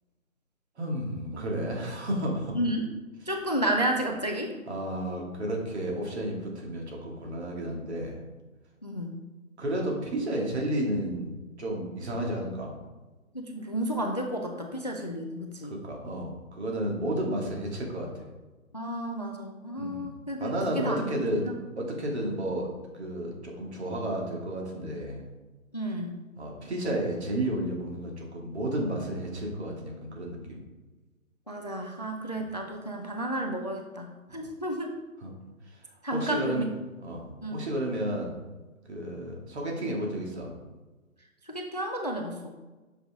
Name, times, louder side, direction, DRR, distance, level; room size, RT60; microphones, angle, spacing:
voice 1, 0.8-2.6 4.7-8.2 9.6-12.7 15.7-18.2 19.8-20.1 20.4-21.5 21.8-25.3 26.4-30.6 32.3-32.4 35.2-35.3 35.7-35.8 36.1-36.6 37.0-38.3 38.9-40.5, right 1 dB, 50° right, 0 dB, 2.1 m, -32 dB
voice 2, 2.5-2.8 3.3-4.5 8.8-9.2 13.3-15.8 18.7-21.1 21.4-21.5 25.7-26.1 31.5-34.9 36.0-36.8 37.4-37.6 41.4-42.4, right 1 dB, 30° left, 3 dB, 0.4 m, -32 dB
7.4 x 5.6 x 3.5 m, 1.2 s
figure-of-eight pair, 155°, 42 cm